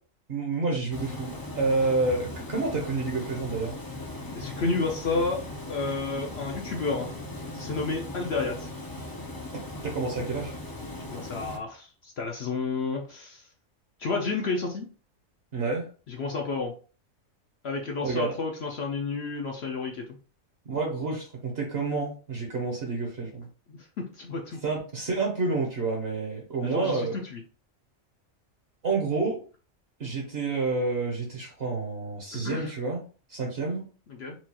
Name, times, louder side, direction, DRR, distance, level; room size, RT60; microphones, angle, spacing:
voice 1, 0.3-3.7 9.8-10.5 15.5-15.9 18.0-18.3 20.7-23.5 24.6-27.1 28.8-29.4 30.0-33.0 33.3-33.9, right 3 dB, 55° right, 0 dB, 1.0 m, -29 dB
Water, 0.9-11.6, left 2 dB, 30° left, 0.3 m, -38 dB
voice 2, 4.3-5.4 5.7-7.1 7.5-8.7 11.1-13.5 14.0-14.9 16.1-16.7 17.6-20.2 23.7-24.6 26.6-27.4 32.3-32.7 34.1-34.4, left 4 dB, 60° left, 1 dB, 0.8 m, -31 dB
4.4 x 2.3 x 2.8 m, 0.38 s
omnidirectional pair, 1.4 m